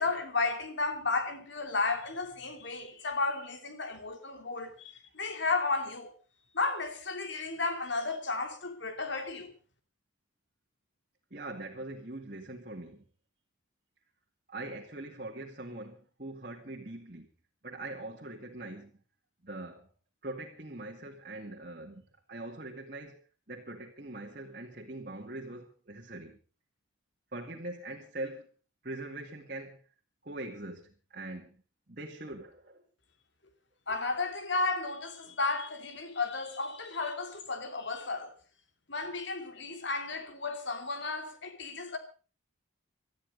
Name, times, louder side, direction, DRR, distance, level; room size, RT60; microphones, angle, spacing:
voice 1, 0.0-6.1 6.5-9.5 33.9-38.3 38.9-42.0, left 3 dB, 60° left, 2.9 m, -33 dB
voice 2, 11.3-13.0 14.5-17.3 17.6-18.9 19.4-19.9 20.2-22.0 22.3-23.2 23.5-26.4 27.3-28.5 28.8-29.8 30.2-31.6 31.9-32.8, right 2 dB, 45° right, 2.2 m, -42 dB
19.0 x 13.0 x 5.3 m
head